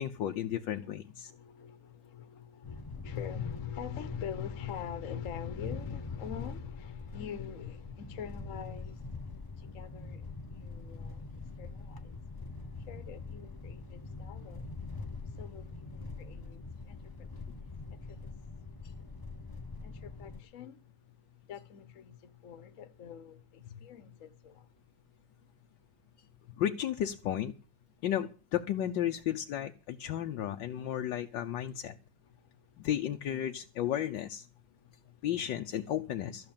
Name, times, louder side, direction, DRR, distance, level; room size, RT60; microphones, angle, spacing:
voice 1, 0.0-1.3 26.6-27.5 28.0-31.9 32.8-34.5 35.2-36.4, left 11 dB, 80° left, 1.5 m, -33 dB
voice 2, 0.9-11.2 11.5-12.2 12.8-14.7 15.4-17.4 17.9-18.5 19.8-25.7 32.2-32.9 34.6-35.3 36.1-36.2 36.4-36.5, left 9 dB, 50° left, 1.3 m, -45 dB
sound 1, 2.6-20.4, left 3 dB, 25° left, 0.5 m, -43 dB
14.0 x 6.7 x 8.7 m
omnidirectional pair, 2.0 m